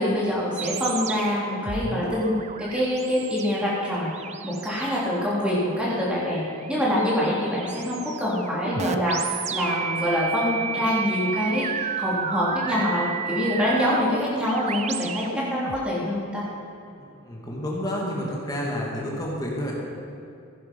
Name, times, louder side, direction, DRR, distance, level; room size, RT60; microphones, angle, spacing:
voice 1, 0.0-4.1 4.4-9.2 9.5-16.4, left 1 dB, 5° right, -7 dB, 3.3 m, -25 dB
sound 1, 0.6-15.9, right 6 dB, 30° right, 0.5 m, -33 dB
voice 2, 16.9-19.7, equal, 15° left, -3 dB, 2.3 m, -30 dB
15.5 x 10.0 x 5.5 m, 2.8 s
head